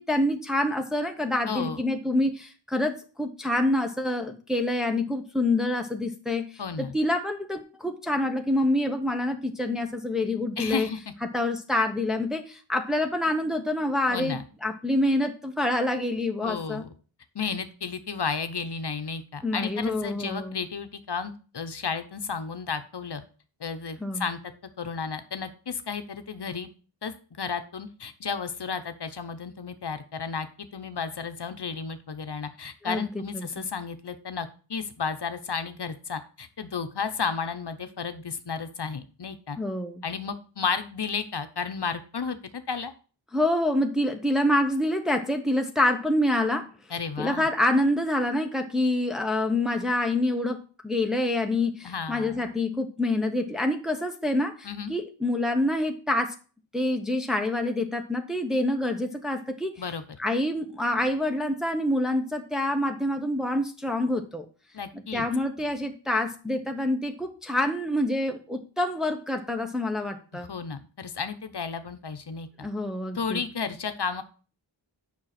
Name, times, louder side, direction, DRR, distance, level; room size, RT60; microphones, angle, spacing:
voice 1, 0.0-6.5 6.8-10.9 11.2-16.8 19.4-20.6 24.0-24.3 32.8-33.0 33.3-33.5 39.6-40.0 43.3-46.7 47.2-56.3 56.7-59.7 60.2-64.4 64.9-70.5 72.6-73.4, left 1 dB, ahead, 4 dB, 1.0 m, -27 dB
voice 2, 1.5-1.8 6.6-6.9 10.6-11.0 14.1-14.4 16.4-16.9 17.3-23.2 23.6-24.4 24.8-26.7 27.0-39.6 40.0-42.9 46.9-47.5 51.8-52.5 54.6-54.9 59.8-60.0 64.7-65.3 70.3-72.7 73.1-74.2, left 5 dB, 60° left, 9 dB, 1.0 m, -33 dB
7.5 x 5.9 x 5.9 m, 0.38 s
wide cardioid pair, 85°, 45 cm